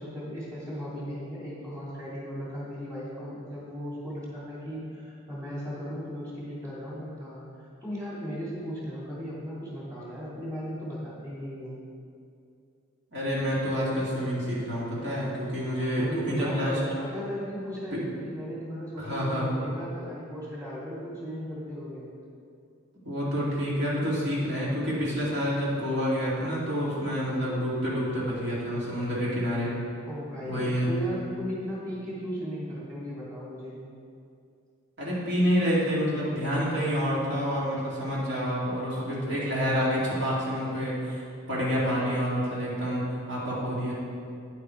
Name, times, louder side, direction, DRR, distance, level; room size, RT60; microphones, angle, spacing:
voice 1, 0.0-11.8 15.9-22.1 30.0-33.8, equal, 15° right, -7 dB, 2.6 m, -36 dB
voice 2, 13.1-16.8 19.0-19.5 23.0-29.7 30.5-30.9 35.0-41.2 41.5-43.0 43.3-43.9, equal, 55° right, -7 dB, 2.3 m, -28 dB
9.7 x 7.2 x 4.5 m, 2.4 s
head